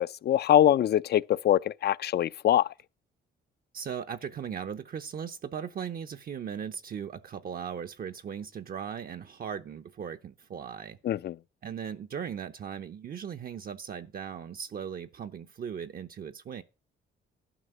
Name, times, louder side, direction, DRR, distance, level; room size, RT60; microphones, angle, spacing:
voice 1, 0.0-2.7 11.0-11.4, left 11 dB, 55° left, 0.5 m, -23 dB
voice 2, 3.7-11.0 11.6-16.6, right 7 dB, 50° right, 0.7 m, -38 dB
11.5 x 5.3 x 7.8 m
cardioid pair, 90°, 20 cm